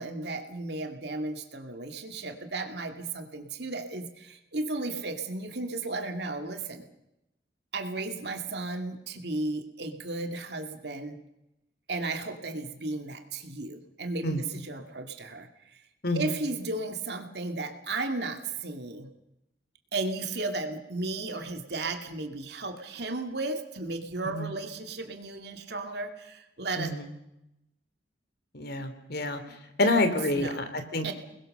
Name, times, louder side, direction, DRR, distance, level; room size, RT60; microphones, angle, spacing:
voice 1, 0.0-6.9 7.7-11.2 11.9-15.8 16.1-19.1 19.9-26.9 30.3-30.6 31.0-31.1, right 2 dB, 65° right, 6 dB, 2.5 m, -34 dB
voice 2, 16.0-16.4 24.3-24.5 26.8-27.1 28.5-29.4 29.8-31.1, left 2 dB, 60° left, 8 dB, 3.1 m, -27 dB
29.5 x 21.0 x 6.8 m, 0.89 s
head